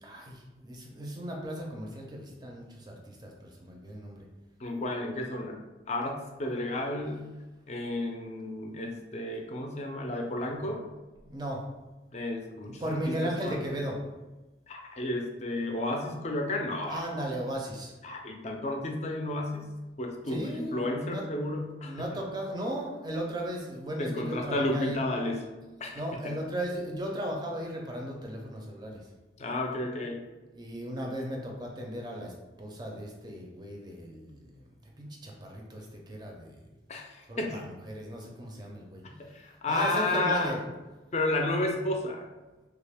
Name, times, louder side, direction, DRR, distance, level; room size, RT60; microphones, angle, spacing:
voice 1, 0.0-4.3 11.2-11.6 12.8-14.0 16.9-17.9 20.3-21.2 21.8-25.0 25.9-29.0 30.5-32.3 32.6-34.6 35.0-36.6 37.3-39.0 39.7-40.6, equal, 25° right, 0 dB, 0.5 m, -36 dB
voice 2, 4.6-5.6 5.9-7.3 7.7-10.8 12.1-13.1 13.4-13.6 14.7-17.1 18.0-19.6 20.0-22.2 24.0-25.5 25.8-26.4 29.4-30.2 36.9-37.7 39.0-40.5 41.1-42.2, left 2 dB, 35° left, 2 dB, 0.4 m, -32 dB
3.3 x 2.4 x 3.4 m, 1.1 s
head